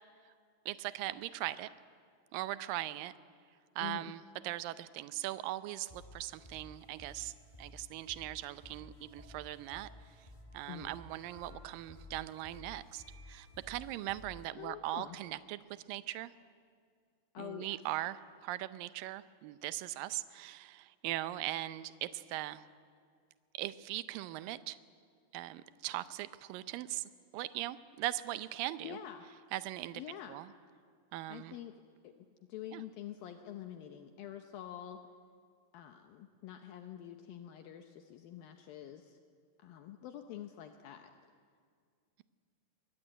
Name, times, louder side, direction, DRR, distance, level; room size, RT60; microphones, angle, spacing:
voice 1, 0.7-1.7 2.3-3.1 3.8-9.9 10.2-10.3 10.5-15.6 15.9-16.3 17.4-22.6 23.5-24.8 25.3-29.0 29.5-30.0 30.3-30.5 31.1-31.6 32.7-32.8, right 15 dB, 75° right, 13 dB, 2.2 m, -40 dB
voice 2, 3.8-4.1 10.7-10.9 14.6-15.2 17.3-17.8 28.8-29.2 29.9-30.4 31.3-31.8 32.0-35.0 35.7-39.2 39.6-41.1, left 11 dB, 75° left, 6 dB, 2.5 m, -46 dB
sound 1, 5.9-14.5, left 1 dB, 15° left, 1.1 m, -54 dB
sound 2, 9.2-9.3 9.7-10.1 10.7-10.8 11.3-11.7 12.4-12.5 13.0-13.6, equal, 5° right, 3.1 m, -63 dB
22.5 x 22.0 x 9.0 m, 2.1 s
omnidirectional pair, 4.6 m